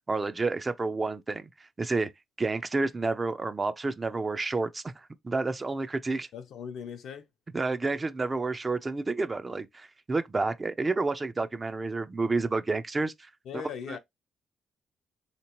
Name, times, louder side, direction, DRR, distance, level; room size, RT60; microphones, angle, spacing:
voice 1, 0.1-1.5 1.8-2.1 2.4-6.3 7.5-13.3 13.9-14.0, right 3 dB, 25° right, 0.4 m, -30 dB
voice 2, 6.3-7.3 13.5-14.0, left 7 dB, 75° left, 0.7 m, -39 dB
3.3 x 2.9 x 2.9 m
cardioid pair, 90°, 0 cm